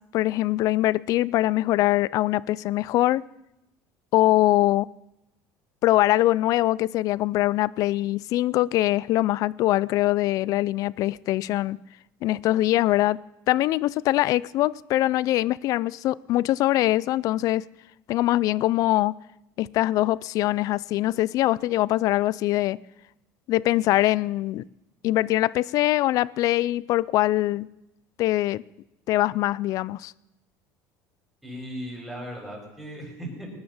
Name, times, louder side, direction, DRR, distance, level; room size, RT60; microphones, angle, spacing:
voice 1, 0.1-3.2 4.1-4.9 5.8-11.8 12.2-13.2 13.5-17.7 18.1-19.2 19.6-22.8 23.5-24.6 25.0-27.7 28.2-28.6 29.1-30.1, left 16 dB, 60° left, 0.5 m, -23 dB
voice 2, 31.4-33.5, equal, ahead, 7.6 m, -37 dB
20.5 x 9.6 x 7.3 m
supercardioid pair, 115°, 7 cm